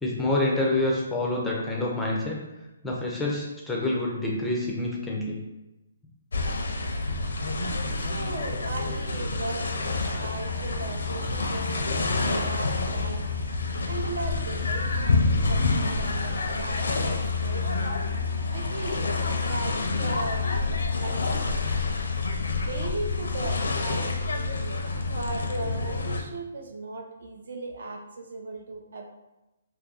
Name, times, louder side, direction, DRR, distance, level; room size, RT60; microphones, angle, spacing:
voice 1, 0.0-2.4 2.8-5.4, left 2 dB, 5° left, -3 dB, 0.4 m, -27 dB
sound 1, 6.3-26.2, left 3 dB, 85° left, 0.5 m, -28 dB
voice 2, 7.6-17.8 18.5-20.5 20.9-21.6 22.5-24.8 25.0-29.1, right 2 dB, 65° right, 2 dB, 0.6 m, -38 dB
2.6 x 2.5 x 3.7 m, 1.0 s
hypercardioid pair, 170°, 0 cm